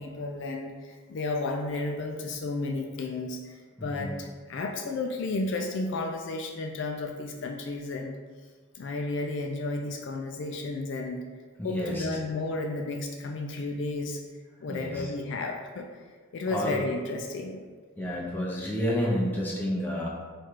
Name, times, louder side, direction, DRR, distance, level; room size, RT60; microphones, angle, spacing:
voice 1, 0.0-8.2 8.7-11.2 11.6-14.2 14.6-15.9 16.3-17.6, left 2 dB, 55° left, 2 dB, 0.3 m, -32 dB
voice 2, 3.8-4.1 11.6-12.0 14.7-15.0 16.5-16.7 18.0-20.1, equal, 10° left, -4 dB, 0.6 m, -30 dB
4.6 x 2.4 x 4.5 m, 1.5 s
head